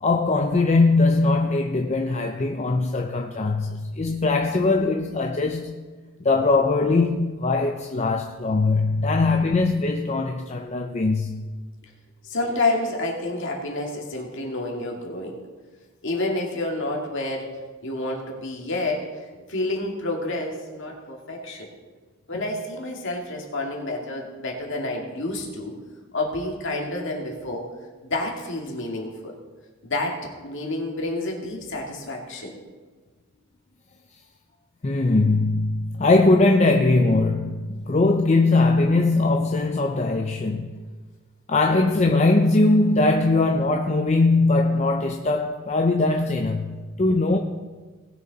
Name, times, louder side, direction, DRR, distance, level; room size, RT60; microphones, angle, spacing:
voice 1, 0.0-5.8 6.2-11.5 34.8-40.7 41.5-47.4, left 3 dB, 30° left, 0.5 m, -21 dB
voice 2, 12.2-15.4 16.0-19.1 19.5-21.7 22.3-25.7 26.1-27.6 28.0-29.3 29.8-32.6, left 2 dB, 55° left, 2.2 m, -29 dB
19.0 x 6.8 x 4.0 m
head